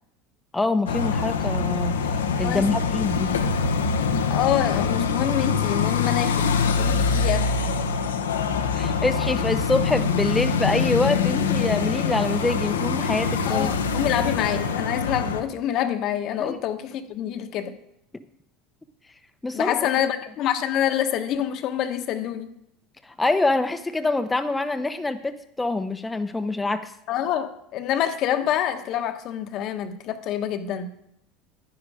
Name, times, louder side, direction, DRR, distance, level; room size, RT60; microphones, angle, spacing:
voice 1, 0.5-3.3 8.7-14.1 16.4-16.6 19.4-19.7 23.0-26.9, left 2 dB, 15° left, 0.8 m, -25 dB
sound 1, 0.9-15.4, left 5 dB, 85° left, 1.0 m, -24 dB
voice 2, 4.3-6.5 6.8-7.5 13.5-17.8 19.5-22.5 27.1-30.9, left 10 dB, 55° left, 1.2 m, -26 dB
10.5 x 10.5 x 4.9 m
hypercardioid pair, 80°, 0 cm